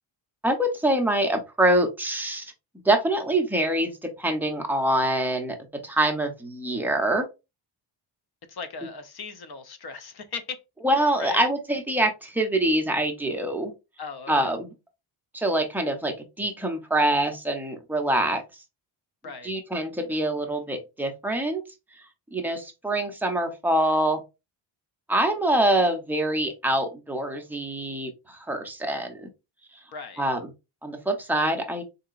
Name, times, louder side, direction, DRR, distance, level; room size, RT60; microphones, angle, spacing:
voice 1, 0.4-2.5 2.8-3.9 4.2-5.6 5.8-7.3 10.8-13.7 14.3-14.7 15.3-18.4 19.4-21.6 22.3-24.2 25.1-29.3 30.2-30.5 30.8-31.8, right 1 dB, 5° right, 0.5 m, -25 dB
voice 2, 8.5-10.6 11.2-11.4 14.0-14.3 19.2-19.5 29.9-30.2, left 5 dB, 50° left, 0.7 m, -37 dB
3.8 x 2.8 x 2.4 m
wide cardioid pair, 145°, 50 cm